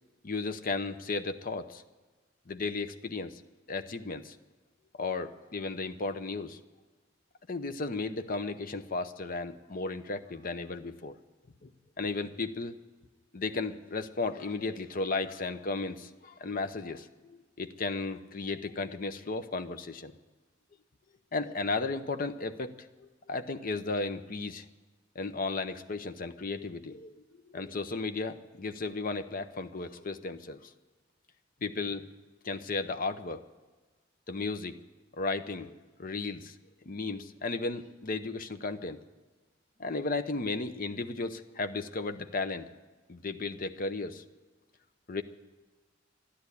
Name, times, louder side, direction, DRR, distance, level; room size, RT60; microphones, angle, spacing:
voice 1, 0.2-1.8 2.5-3.4 3.7-4.4 4.9-6.6 7.5-11.2 11.6-11.7 12.0-12.8 13.3-20.1 21.3-22.7 23.0-24.6 25.1-30.7 31.6-32.1 32.4-33.4 34.3-34.8 35.1-36.6 36.9-39.0 39.8-42.7 43.1-44.2 45.1-45.2, left 3 dB, 45° left, 10 dB, 0.7 m, -34 dB
13.0 x 10.5 x 9.7 m, 1.3 s
head